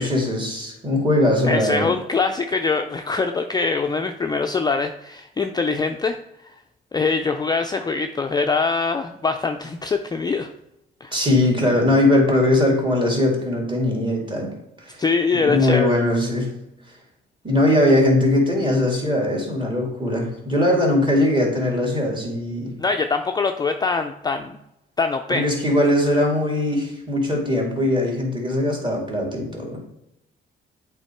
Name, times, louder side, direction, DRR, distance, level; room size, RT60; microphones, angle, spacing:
voice 1, 0.0-1.9 11.1-14.5 14.8-15.0 15.4-16.5 17.4-22.7 25.3-29.8, left 1 dB, 25° right, -1 dB, 2.3 m, -20 dB
voice 2, 1.4-6.5 6.9-10.5 11.0-11.2 15.0-15.9 22.8-24.6 25.0-25.4, left 4 dB, 20° left, 5 dB, 0.4 m, -23 dB
8.1 x 3.6 x 4.4 m, 0.85 s
cardioid pair, 90°, 20 cm